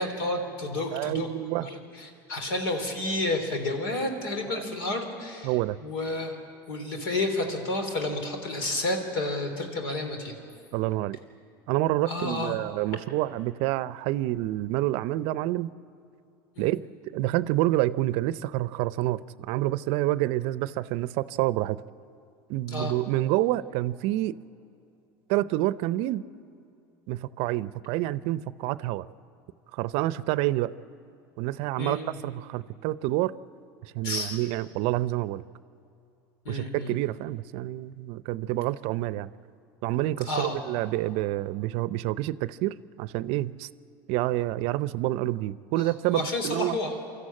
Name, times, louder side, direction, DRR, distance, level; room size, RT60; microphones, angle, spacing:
voice 1, 0.0-1.3 1.5-5.5 5.8-6.4 6.7-10.4 12.1-12.6 16.6-16.7 22.7-22.9 31.8-32.2 34.0-34.4 36.5-36.9 40.3-40.6 45.8-47.0, left 2 dB, 75° left, 5 dB, 3.5 m, -30 dB
voice 2, 0.9-1.7 4.5-4.6 5.4-5.8 10.7-11.2 11.7-15.7 16.6-21.8 22.5-24.4 25.3-26.2 27.1-29.1 29.7-30.7 31.4-33.3 33.8-35.4 36.5-39.3 39.8-43.7 44.1-46.8, right 16 dB, 60° right, 17 dB, 0.6 m, -28 dB
25.0 x 13.5 x 8.7 m, 2.6 s
hypercardioid pair, 90°, 12 cm